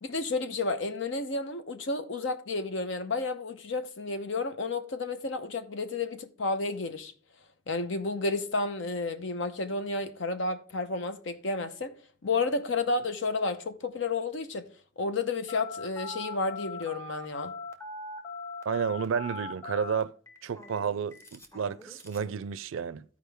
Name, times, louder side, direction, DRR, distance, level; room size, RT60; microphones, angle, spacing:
voice 1, 0.0-7.1 7.7-11.9 12.2-14.7 15.0-17.5, left 3 dB, 70° left, 0.8 m, -31 dB
Telephone, 15.5-22.3, left 3 dB, 15° left, 0.9 m, -41 dB
voice 2, 18.7-20.1 20.4-23.0, right 6 dB, 85° right, 0.4 m, -31 dB
14.0 x 4.8 x 3.4 m
head